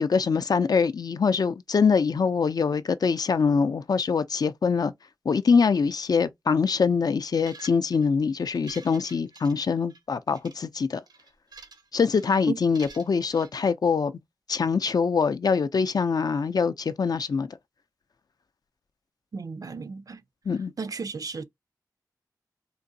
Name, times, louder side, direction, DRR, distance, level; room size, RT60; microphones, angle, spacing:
voice 1, 0.0-4.9 5.2-11.0 11.9-14.1 14.5-17.6 20.5-20.7, left 5 dB, 65° left, 0.4 m, -24 dB
sound 1, 7.4-8.0 8.5-10.0 10.3-10.5 11.1-11.9 12.1-12.3 12.7-13.5, right 3 dB, 85° right, 0.7 m, -48 dB
voice 2, 19.3-20.2 20.8-21.5, right 4 dB, 60° right, 0.4 m, -34 dB
3.7 x 2.5 x 2.6 m
wide cardioid pair, 80°, 7 cm